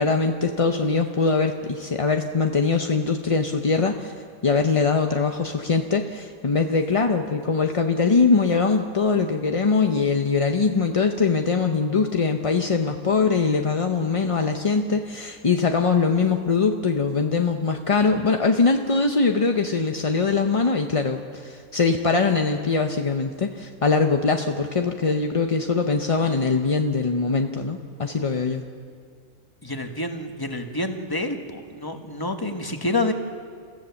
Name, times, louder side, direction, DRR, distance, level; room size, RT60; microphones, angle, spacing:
voice 1, 0.0-4.1 4.4-28.6, left 4 dB, 35° left, 4 dB, 0.5 m, -22 dB
voice 2, 29.6-33.1, left 2 dB, 15° left, 5 dB, 1.2 m, -28 dB
28.0 x 15.0 x 7.0 m, 2.1 s
omnidirectional pair, 1.6 m